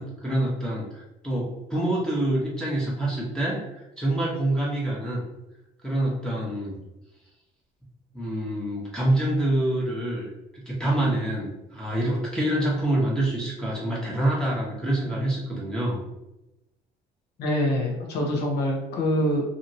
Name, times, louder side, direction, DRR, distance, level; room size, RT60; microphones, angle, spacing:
voice 1, 0.0-5.2 5.8-6.8 8.1-16.0, right 1 dB, 5° left, -5 dB, 0.9 m, -26 dB
voice 2, 17.4-19.4, equal, 75° left, 1 dB, 0.9 m, -25 dB
2.8 x 2.8 x 2.6 m, 0.93 s
cardioid pair, 110°, 17 cm